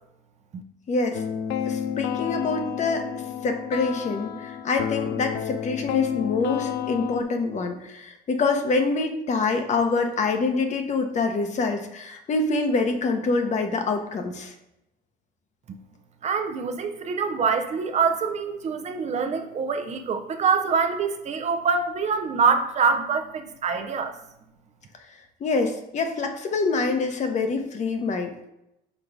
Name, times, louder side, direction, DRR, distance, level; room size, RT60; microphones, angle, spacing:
voice 1, 0.9-1.2 1.7-3.1 3.4-14.5 25.4-28.4, left 3 dB, 45° left, 5 dB, 0.9 m, -25 dB
sound 1, 1.1-7.2, left 9 dB, 85° left, 0.5 m, -30 dB
voice 2, 16.2-24.2, right 5 dB, 40° right, 7 dB, 0.7 m, -25 dB
5.3 x 3.9 x 4.6 m, 0.84 s
cardioid pair, 110°, 17 cm